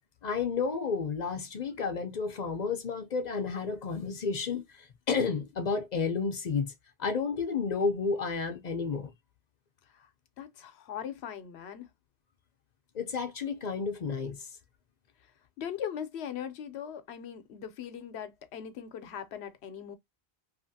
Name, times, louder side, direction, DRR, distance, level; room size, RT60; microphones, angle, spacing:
voice 1, 0.2-6.7 7.0-9.1 12.9-14.5, left 5 dB, 55° left, 0.5 m, -31 dB
voice 2, 10.4-11.9 15.2-15.3 15.6-20.0, left 8 dB, 85° left, 0.9 m, -40 dB
2.7 x 2.4 x 2.6 m
omnidirectional pair, 1.1 m